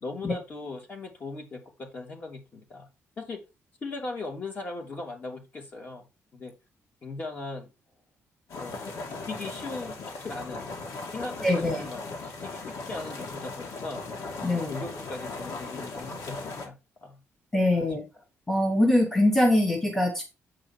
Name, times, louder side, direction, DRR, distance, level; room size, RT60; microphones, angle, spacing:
voice 1, 0.0-2.9 3.2-3.4 3.8-6.1 6.3-6.5 7.0-7.7 8.6-8.8 9.1-10.0 10.2-10.6 11.1-12.6 12.9-14.0 14.5-16.7 17.0-17.2 17.7-17.9 18.1-18.2, left 3 dB, 35° left, 2 dB, 2.7 m, -38 dB
sound 1, 8.5-16.7, left 3 dB, 75° left, 2.6 m, -38 dB
voice 2, 11.4-11.9 14.4-14.7 17.5-18.0 18.5-20.2, left 1 dB, 5° left, 2 dB, 1.4 m, -23 dB
8.3 x 4.8 x 4.4 m, 0.27 s
cardioid pair, 170°, 5 cm